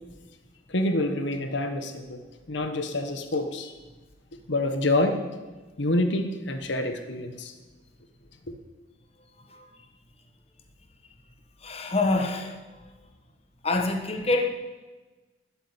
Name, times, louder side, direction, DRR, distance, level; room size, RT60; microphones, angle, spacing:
voice 1, 0.7-2.2 2.5-3.7 4.5-5.2 5.8-7.5, left 1 dB, 65° left, 7 dB, 1.2 m, -27 dB
voice 2, 11.6-12.9 13.6-14.5, left 2 dB, 30° left, 3 dB, 1.4 m, -26 dB
13.0 x 8.6 x 9.7 m, 1.2 s
head